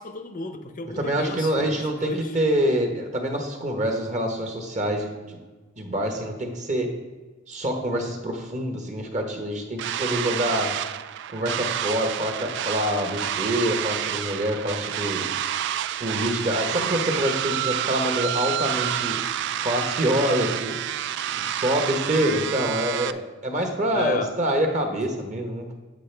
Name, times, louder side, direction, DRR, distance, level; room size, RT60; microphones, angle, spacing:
voice 1, 0.0-2.3 23.9-24.3, left 3 dB, 40° left, 7 dB, 0.7 m, -33 dB
voice 2, 0.9-5.4 5.8-6.9 7.5-10.8 11.3-15.2 16.0-19.2 19.6-20.8 21.4-25.8, equal, 35° right, 3 dB, 1.1 m, -26 dB
sound 1, 9.8-23.1, right 11 dB, 60° right, 0.3 m, -29 dB
8.4 x 7.5 x 3.3 m, 1.3 s
head